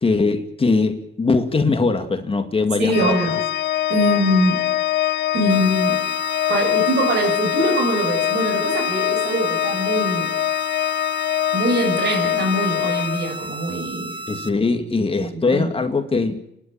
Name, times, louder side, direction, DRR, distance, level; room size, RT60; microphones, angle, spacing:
voice 1, 0.0-3.4 14.3-16.4, left 3 dB, 30° left, 7 dB, 2.1 m, -21 dB
voice 2, 2.8-3.4 3.9-4.6 5.3-6.0 6.5-10.3 11.5-14.2 15.2-15.7, right 1 dB, 60° right, 4 dB, 6.8 m, -22 dB
Organ, 2.9-13.8, left 12 dB, 60° left, 0.8 m, -23 dB
sound 1, 5.5-14.5, right 2 dB, 25° right, 1.5 m, -34 dB
29.0 x 11.5 x 8.8 m, 0.83 s
cardioid pair, 90°, 20 cm